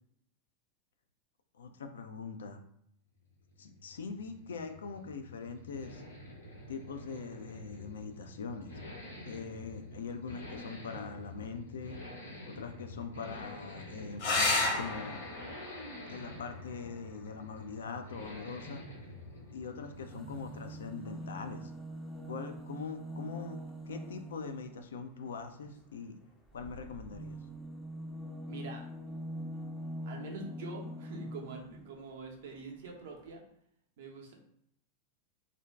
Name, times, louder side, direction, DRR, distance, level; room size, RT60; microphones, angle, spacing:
voice 1, 1.5-2.6 3.6-6.0 6.7-8.7 9.2-12.0 12.5-15.2 16.1-18.8 19.5-21.7 22.3-23.6 23.9-26.1 26.5-27.4, left 5 dB, 65° left, 6 dB, 0.3 m, -42 dB
sound 1, 3.2-21.2, left 1 dB, 80° left, 1.0 m, -48 dB
sound 2, 14.2-19.2 21.1-21.7 25.2-25.3 25.6-25.7, left 2 dB, 45° left, 0.8 m, -35 dB
sound 3, 19.9-24.8 26.5-31.9 32.9-33.0 33.2-33.3, equal, ahead, 0.5 m, -43 dB
voice 2, 28.5-28.8 30.0-33.4 34.0-34.3, right 3 dB, 55° right, 1 dB, 0.6 m, -45 dB
2.5 x 2.1 x 3.4 m, 0.71 s
figure-of-eight pair, 90°, 0 cm